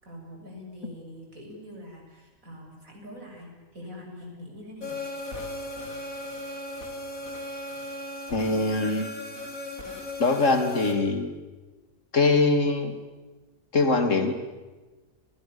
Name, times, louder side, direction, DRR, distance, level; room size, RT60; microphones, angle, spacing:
voice 1, 0.0-5.0, left 1 dB, 85° right, 1 dB, 7.8 m, -44 dB
sound 1, 4.8-10.9, left 2 dB, 85° left, 5.1 m, -36 dB
voice 2, 8.3-9.1 10.2-11.3 12.1-12.9 13.7-14.3, left 3 dB, 65° left, 8 dB, 3.0 m, -22 dB
29.5 x 28.5 x 7.0 m, 1.2 s
omnidirectional pair, 1.4 m